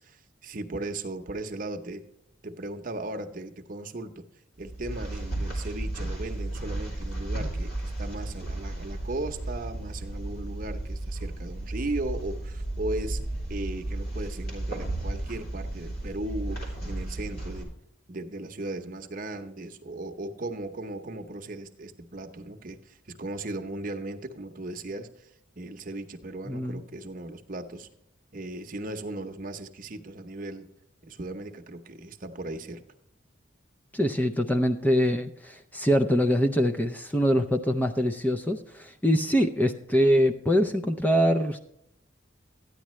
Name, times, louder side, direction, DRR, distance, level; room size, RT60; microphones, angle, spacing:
voice 1, 0.0-2.0 2.4-4.2 4.6-13.2 13.5-17.7 18.1-25.3 25.6-27.9 28.3-30.7 31.0-32.8, right 2 dB, 45° right, 5 dB, 0.8 m, -37 dB
sound 1, 4.6-17.6, right 1 dB, 50° left, 3.6 m, -34 dB
voice 2, 26.5-26.8 33.9-41.6, equal, 10° left, 6 dB, 0.4 m, -24 dB
13.5 x 9.9 x 3.1 m, 0.78 s
head